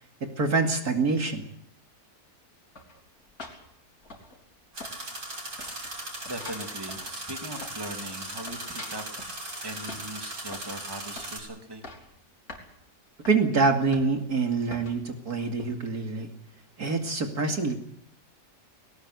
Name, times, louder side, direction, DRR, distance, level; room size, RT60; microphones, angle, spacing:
voice 1, 0.2-1.5 13.3-16.3 16.8-17.8, right 4 dB, 65° right, 4 dB, 3.0 m, -25 dB
sound 1, 2.8-4.6 4.8-5.3 5.6-8.0 8.2-9.4 9.9-10.8 11.2-11.4 11.7-12.1 12.5-12.7 13.2-13.4 13.9-14.3 14.7-15.0 15.6-15.7, left 2 dB, 55° left, 4.2 m, -44 dB
sound 2, 4.7-11.4, right 1 dB, 90° right, 6.6 m, -38 dB
voice 2, 6.3-9.1 9.6-11.8, right 1 dB, 15° right, 4 dB, 2.6 m, -39 dB
21.0 x 18.5 x 8.2 m, 0.71 s
omnidirectional pair, 1.8 m